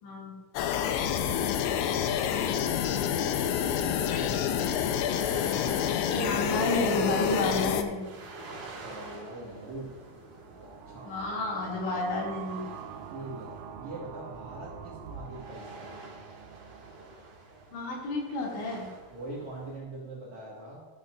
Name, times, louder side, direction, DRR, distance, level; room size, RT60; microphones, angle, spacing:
voice 1, 0.0-0.3 6.1-8.1 11.0-12.6 17.7-18.9, left 2 dB, 65° left, -3 dB, 4.6 m, -31 dB
sound 1, 0.6-7.8, left 9 dB, 90° left, 2.6 m, -28 dB
voice 2, 2.4-2.7 3.8-4.8 8.8-9.9 10.6-11.1 13.1-15.9 19.1-20.8, right 2 dB, 60° right, -5 dB, 1.9 m, -43 dB
sound 2, 3.3-19.8, right 3 dB, 40° right, 4.2 m, -49 dB
sound 3, 10.3-17.8, right 8 dB, 80° right, 3.3 m, -46 dB
13.5 x 12.5 x 2.5 m, 1.3 s
omnidirectional pair, 5.9 m